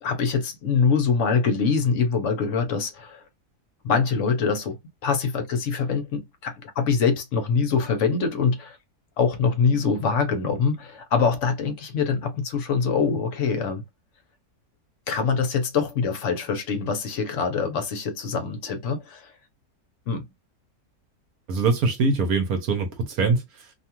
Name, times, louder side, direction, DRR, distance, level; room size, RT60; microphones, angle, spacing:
voice 1, 0.0-3.2 3.8-8.8 9.2-13.8 15.1-19.3 20.1-20.2, left 5 dB, 60° left, 0.9 m, -24 dB
voice 2, 21.5-23.7, right 4 dB, 75° right, 1.1 m, -23 dB
2.7 x 2.3 x 2.8 m
omnidirectional pair, 1.6 m